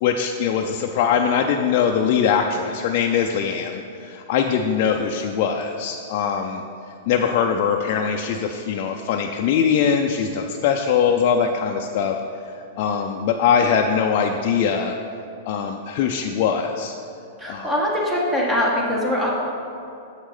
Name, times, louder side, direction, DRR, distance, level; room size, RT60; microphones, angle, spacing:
voice 1, 0.0-6.6 7.1-12.2 12.5-15.0 15.5-16.9 17.5-17.7, left 7 dB, 50° left, 2 dB, 0.5 m, -22 dB
voice 2, 17.4-19.3, left 1 dB, 15° right, -4 dB, 1.6 m, -22 dB
7.3 x 6.3 x 4.9 m, 2.7 s
hypercardioid pair, 120°, 0 cm